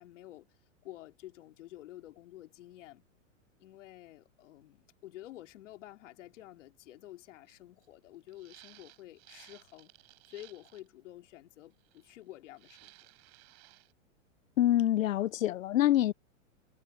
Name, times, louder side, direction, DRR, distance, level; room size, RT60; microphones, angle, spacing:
voice 1, 0.0-3.1 3.6-9.9 10.3-13.1, left 14 dB, 65° left, 3.2 m, -50 dB
sound 1, 7.5-7.6 7.8-7.9 8.3-10.9 11.8-12.3 12.6-13.9, right 23 dB, 55° right, 5.2 m, -58 dB
voice 2, 14.6-16.1, left 13 dB, 85° left, 0.7 m, -26 dB
hypercardioid pair, 130°, 39 cm